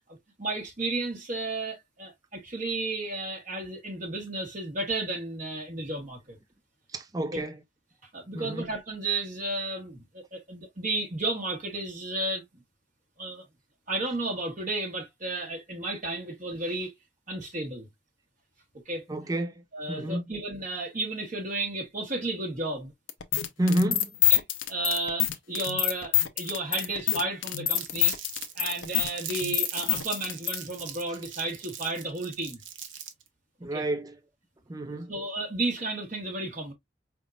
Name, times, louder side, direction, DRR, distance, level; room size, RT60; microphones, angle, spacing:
voice 1, 0.4-6.4 7.3-7.4 8.1-12.4 13.2-13.4 13.9-16.9 17.3-17.9 18.8-19.0 19.7-22.9 24.3-24.4 24.7-28.2 28.5-32.6 33.7-33.8 34.9-36.7, right 2 dB, 40° right, 1.1 m, -33 dB
voice 2, 6.9-7.6 8.3-8.7 19.1-20.3 23.6-24.2 33.6-34.2 34.7-35.1, right 1 dB, 20° right, 0.4 m, -30 dB
sound 1, 23.1-30.6, left 12 dB, 85° left, 0.7 m, -26 dB
Crumpling crinkling, 27.7-33.3, right 9 dB, 85° right, 1.0 m, -40 dB
5.1 x 3.6 x 2.3 m
head